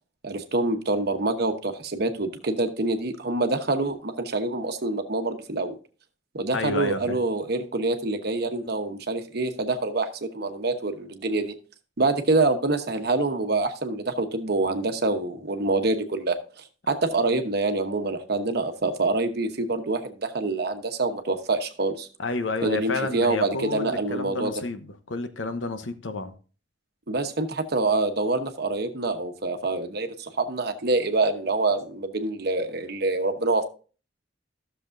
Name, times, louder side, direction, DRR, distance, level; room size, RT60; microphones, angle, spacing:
voice 1, 0.2-5.7 6.3-11.5 12.0-22.1 22.6-24.5 27.1-33.6, right 2 dB, 60° right, 1.0 m, -26 dB
voice 2, 6.5-7.2 22.2-26.3, left 3 dB, 90° left, 1.0 m, -30 dB
13.5 x 6.8 x 2.6 m
head